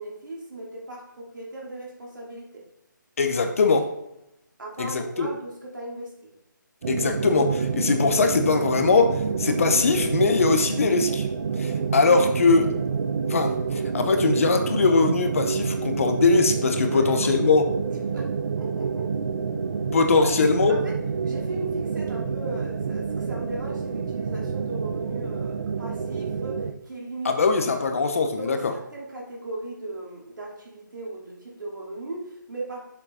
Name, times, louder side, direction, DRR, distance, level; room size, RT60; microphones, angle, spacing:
voice 1, 0.0-2.6 4.6-6.3 16.9-17.4 18.1-18.3 18.6-19.2 20.2-20.3 20.7-21.0 21.2-27.5 28.4-32.8, right 2 dB, 70° right, -3 dB, 2.8 m, -37 dB
voice 2, 3.2-3.9 4.8-5.3 6.9-11.3 11.6-12.7 13.3-17.6 19.9-20.7 27.2-28.6, left 4 dB, 45° left, 6 dB, 0.8 m, -21 dB
sound 1, 6.8-26.7, right 5 dB, 40° right, 0.5 m, -28 dB
6.8 x 5.1 x 4.2 m, 0.85 s
figure-of-eight pair, 160°, 11 cm